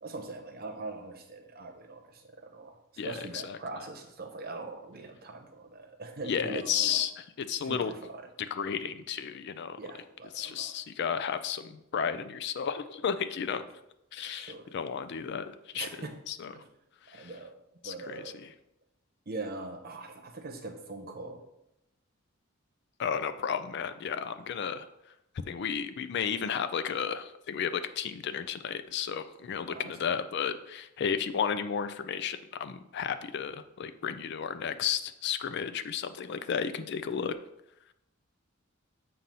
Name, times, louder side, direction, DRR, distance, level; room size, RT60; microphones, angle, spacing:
voice 1, 0.0-2.8 3.0-7.0 7.7-8.2 9.8-10.7 13.5-13.7 14.2-14.7 15.7-16.1 16.5-16.7 17.1-17.6 17.8-18.5 19.3-21.4 29.7-30.2, right 3 dB, 50° right, 3 dB, 0.9 m, -42 dB
voice 2, 3.0-3.6 6.3-7.9 8.4-9.8 10.3-13.6 14.1-15.9 16.3-16.5 17.1-17.3 17.8-18.5 23.0-24.9 25.5-37.3, left 7 dB, 55° left, 11 dB, 0.4 m, -33 dB
7.6 x 2.7 x 5.4 m, 0.85 s
head